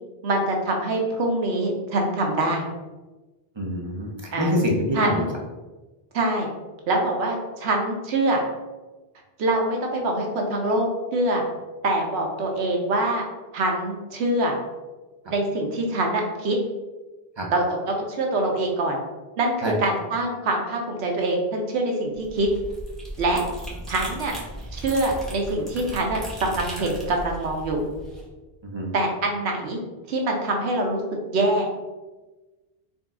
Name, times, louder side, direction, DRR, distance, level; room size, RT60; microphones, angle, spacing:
voice 1, 0.2-2.7 4.3-4.6 4.9-5.3 6.1-6.5 6.9-8.4 9.4-11.4 11.8-13.2 13.5-14.5 15.3-16.6 17.5-19.0 19.4-22.5 23.2-23.4 23.9-24.3 24.7-27.8 28.9-29.8 30.1-31.0 31.3-31.7, right 2 dB, 80° right, 1 dB, 1.0 m, -24 dB
voice 2, 3.6-5.2 17.4-17.5 19.6-19.7 28.7-28.9, equal, 35° right, -1 dB, 0.5 m, -25 dB
sound 1, 22.1-28.2, right 1 dB, ahead, 0.7 m, -37 dB
4.0 x 2.3 x 3.6 m, 1.2 s
omnidirectional pair, 1.1 m